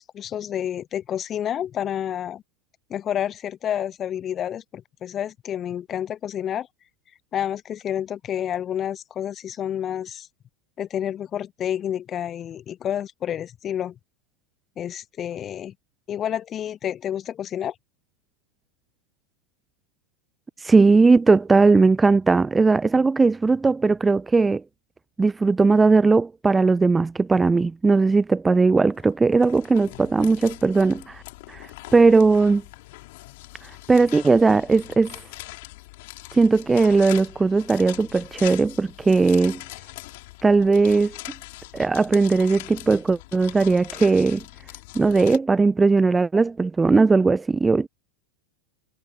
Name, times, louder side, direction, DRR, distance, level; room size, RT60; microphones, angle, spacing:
voice 1, 0.0-2.4 2.9-6.7 7.3-10.3 10.8-13.9 14.8-15.7 16.1-17.7, left 10 dB, 25° left, 1.1 m, -29 dB
voice 2, 20.6-24.6 25.2-31.2 31.5-31.7 31.9-32.6 33.9-35.1 36.3-39.6 40.4-41.2 41.7-44.4 44.9-47.9, right 4 dB, 10° right, 0.6 m, -18 dB
sound 1, 28.9-45.4, left 22 dB, 50° left, 5.1 m, -41 dB
figure-of-eight pair, 90°, 0 cm